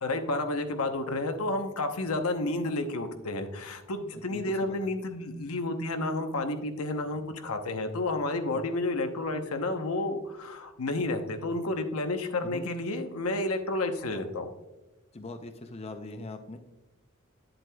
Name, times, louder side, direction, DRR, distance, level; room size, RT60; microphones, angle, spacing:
voice 1, 0.0-14.5, left 2 dB, 85° left, 6 dB, 0.9 m, -31 dB
voice 2, 4.1-4.9 8.5-8.7 12.4-12.7 15.1-16.6, left 2 dB, 30° left, 7 dB, 0.5 m, -42 dB
9.5 x 7.7 x 2.3 m, 1.0 s
head